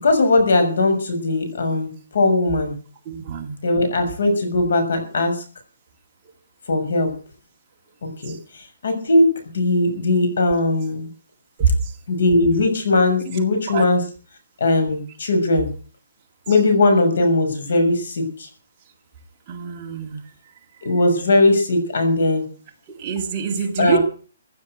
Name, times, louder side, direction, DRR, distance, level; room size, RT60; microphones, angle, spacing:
voice 1, 0.0-2.7 3.6-5.4 6.7-7.1 8.0-11.1 12.1-14.1 14.6-15.7 16.5-18.5 20.8-22.5 23.8-24.0, left 2 dB, 65° left, 7 dB, 6.7 m, -19 dB
voice 2, 3.1-3.5 13.7-13.8 19.5-20.2 23.0-24.0, right 6 dB, 20° right, 1 dB, 2.2 m, -26 dB
16.0 x 9.6 x 7.9 m, 0.40 s
hypercardioid pair, 175°, 0 cm